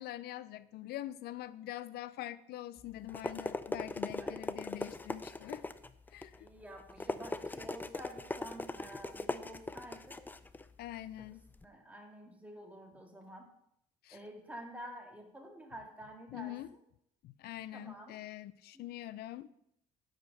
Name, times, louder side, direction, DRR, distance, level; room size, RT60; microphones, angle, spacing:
voice 1, 0.0-5.6 6.1-6.3 10.8-11.4 14.0-14.2 16.3-16.7 17.2-19.5, left 14 dB, 70° left, 0.5 m, -44 dB
Rat Scurry, 2.8-11.6, left 2 dB, 10° left, 0.4 m, -41 dB
voice 2, 6.4-10.2 11.2-11.3 11.6-13.5 14.1-16.6 17.7-18.2 18.7-18.9, right 1 dB, 10° right, 1.8 m, -49 dB
10.0 x 5.0 x 6.3 m
cardioid pair, 110°, 17 cm